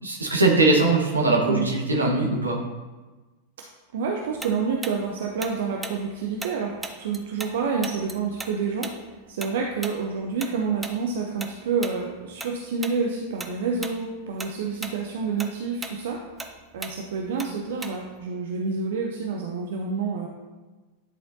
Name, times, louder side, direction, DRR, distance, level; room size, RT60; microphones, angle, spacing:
voice 1, 0.0-2.6, right 2 dB, 80° right, -1 dB, 1.2 m, -21 dB
voice 2, 3.9-8.9 9.3-16.2 16.7-20.3, right 5 dB, 60° right, 1 dB, 0.6 m, -28 dB
Tick-tock, 4.4-7.6 7.8-12.5 12.8-13.0 13.4-14.0 14.3-18.2, right 2 dB, 10° right, 0.6 m, -37 dB
9.8 x 4.3 x 2.7 m, 1.3 s
figure-of-eight pair, 90°, 0 cm